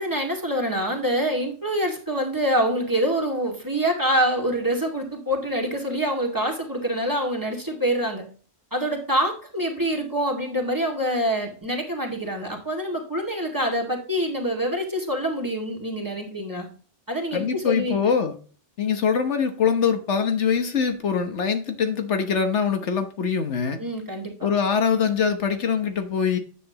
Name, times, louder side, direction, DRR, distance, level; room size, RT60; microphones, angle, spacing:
voice 1, 0.0-8.2 8.7-16.7 17.1-18.0 23.8-24.3, equal, 15° right, 1 dB, 2.1 m, -25 dB
voice 2, 17.3-18.4 18.8-23.8 24.4-26.4, left 6 dB, 70° left, 7 dB, 1.4 m, -23 dB
9.9 x 7.7 x 2.9 m, 0.40 s
omnidirectional pair, 1.2 m